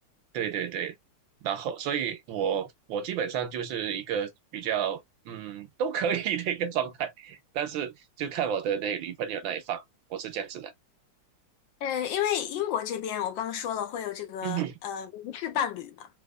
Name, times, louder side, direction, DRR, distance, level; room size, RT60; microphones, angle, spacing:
voice 1, 0.3-0.9 1.4-9.8 10.1-10.7 14.4-14.7, right 8 dB, 70° right, 1.4 m, -31 dB
voice 2, 11.8-16.1, left 9 dB, 75° left, 1.1 m, -31 dB
4.2 x 2.8 x 2.3 m
omnidirectional pair, 2.4 m